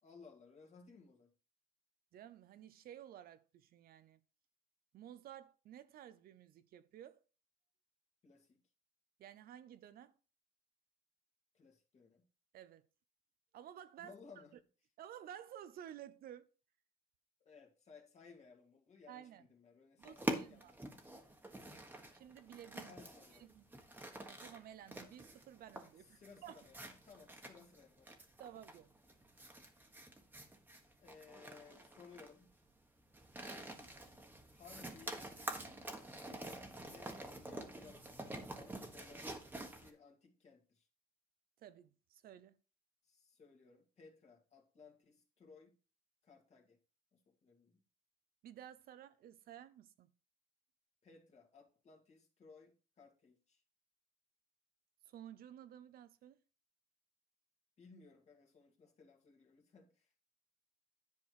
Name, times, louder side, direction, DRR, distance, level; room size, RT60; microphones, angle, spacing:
voice 1, 0.0-1.3 8.2-8.6 11.5-12.3 14.0-14.6 17.4-21.1 21.7-22.0 22.9-23.5 26.0-28.2 31.0-32.5 34.5-35.2 36.1-39.4 39.8-40.9 43.0-45.8 46.2-46.8 47.1-47.8 51.0-53.6 57.8-60.1, left 5 dB, 40° left, 2.2 m, -61 dB
voice 2, 2.1-4.2 4.9-7.2 9.2-10.2 12.5-12.8 13.5-14.1 15.0-16.5 19.1-19.4 20.0-20.7 22.1-23.0 23.4-23.7 24.3-26.7 28.4-28.9 41.6-42.6 48.4-50.1 55.1-56.4, right 10 dB, 60° right, 0.7 m, -54 dB
sound 1, 20.0-39.9, right 1 dB, 10° right, 1.5 m, -47 dB
10.5 x 4.5 x 4.7 m
cardioid pair, 110°, 17 cm